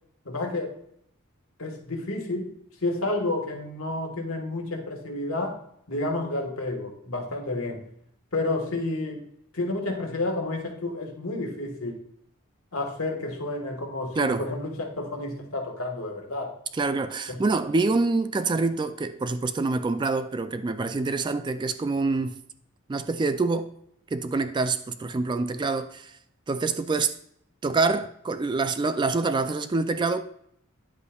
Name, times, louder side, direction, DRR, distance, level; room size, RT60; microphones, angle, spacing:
voice 1, 0.2-0.8 1.6-2.5 2.8-5.6 5.9-7.8 8.3-9.3 9.5-12.0 12.7-16.5 17.3-17.4, left 2 dB, 80° left, 1.4 m, -30 dB
voice 2, 14.2-14.5 16.8-22.4 22.9-23.7 24.1-26.1 26.5-27.1 27.6-30.2, right 3 dB, 20° right, 0.3 m, -26 dB
9.9 x 8.2 x 2.3 m
head